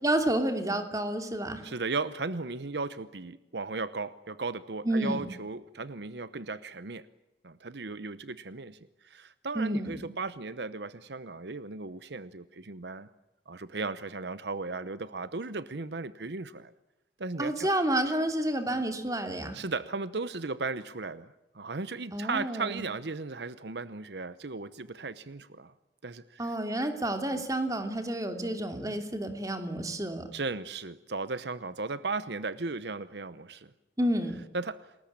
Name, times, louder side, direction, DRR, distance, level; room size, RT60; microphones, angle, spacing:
voice 1, 0.0-1.7 4.8-5.2 9.5-10.1 17.4-19.6 22.1-22.8 26.4-30.3 34.0-34.4, right 1 dB, 20° right, 6 dB, 2.9 m, -30 dB
voice 2, 1.6-7.1 7.4-8.8 9.0-13.1 13.5-16.7 17.2-17.7 18.7-18.8 19.5-25.7 26.0-26.5 27.3-27.4 30.3-33.7 34.5-34.8, right 3 dB, 70° right, 14 dB, 0.9 m, -36 dB
29.0 x 20.5 x 8.8 m, 0.98 s
head